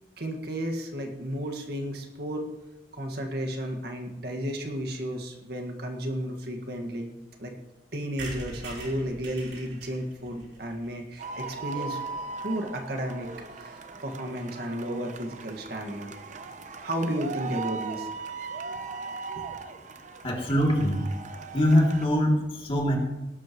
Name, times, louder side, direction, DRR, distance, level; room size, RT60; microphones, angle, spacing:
voice 1, 0.2-2.5 2.9-7.1 7.4-7.5 7.9-12.0 12.4-16.1 16.8-18.1 19.4-19.5, equal, 65° right, 2 dB, 1.9 m, -33 dB
sound 1, 8.2-11.9 12.3-12.4 12.6-12.7 12.9-13.0 13.2-13.4, right 2 dB, 85° right, 4.2 m, -43 dB
sound 2, 11.2-22.1, right 4 dB, 45° right, 0.8 m, -38 dB
voice 2, 20.2-21.0 21.5-23.0, equal, 30° left, -1 dB, 2.9 m, -23 dB
18.5 x 12.0 x 3.1 m, 1.0 s
head